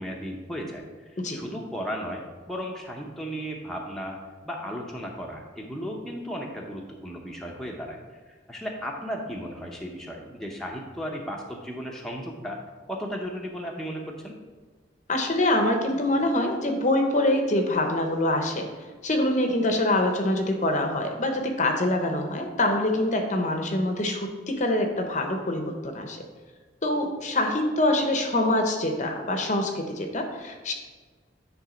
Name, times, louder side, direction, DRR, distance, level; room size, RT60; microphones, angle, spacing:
voice 1, 0.0-4.2 4.4-8.0 8.5-12.6 12.9-14.3, equal, ahead, -1 dB, 0.7 m, -35 dB
voice 2, 15.1-18.7 19.0-26.2 26.8-30.7, left 1 dB, 40° left, 4 dB, 0.7 m, -25 dB
9.6 x 3.3 x 5.1 m, 1.4 s
head